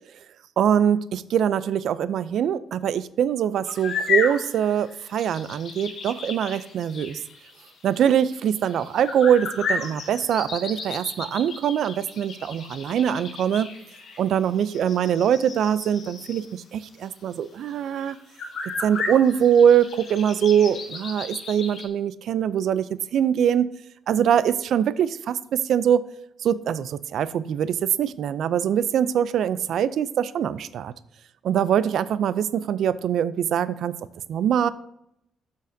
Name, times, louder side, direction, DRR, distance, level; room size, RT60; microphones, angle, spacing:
voice 1, 0.6-7.2 7.8-13.7 14.2-18.2 18.8-23.7 24.1-26.0 26.4-30.9 31.4-34.0 34.3-34.7, right 9 dB, 70° right, 16 dB, 0.4 m, -23 dB
sound 1, 3.6-16.5 17.0-17.1 17.6-17.7 18.0-21.9, left 5 dB, 60° left, 2.6 m, -34 dB
12.0 x 6.5 x 2.7 m, 0.79 s
cardioid pair, 90°, 0 cm